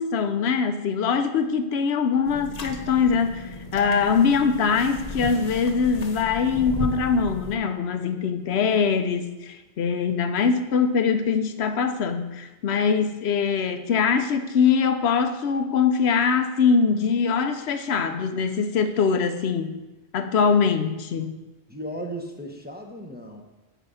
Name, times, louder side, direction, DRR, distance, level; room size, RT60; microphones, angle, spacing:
voice 1, 0.0-19.7 20.1-21.3, left 6 dB, 85° left, 8 dB, 0.9 m, -23 dB
sound 1, 2.2-7.6, left 1 dB, 40° left, 0.9 m, -35 dB
voice 2, 20.4-20.9 21.7-23.4, equal, 10° right, 1 dB, 0.7 m, -36 dB
9.2 x 4.7 x 5.4 m, 1.0 s
omnidirectional pair, 1.1 m